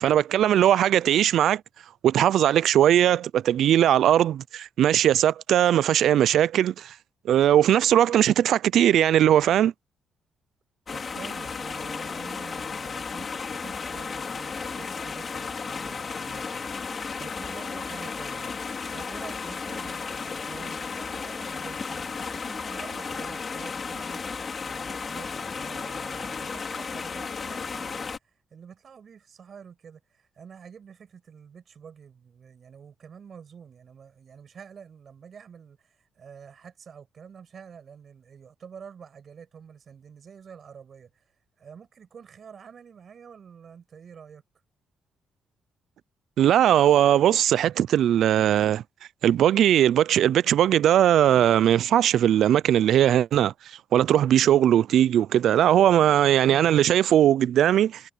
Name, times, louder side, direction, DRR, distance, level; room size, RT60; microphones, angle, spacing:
voice 1, 0.0-1.6 2.0-6.9 7.3-9.7 46.4-48.8 49.2-53.5 53.9-58.0, right 11 dB, 75° right, 0.5 m, -19 dB
sound 1, 10.9-28.2, left 5 dB, 40° left, 4.5 m, -34 dB
voice 2, 10.9-18.5 18.9-24.2 24.6-41.2 41.6-44.4, right 7 dB, 50° right, 7.2 m, -47 dB
cardioid pair, 90°, 0 cm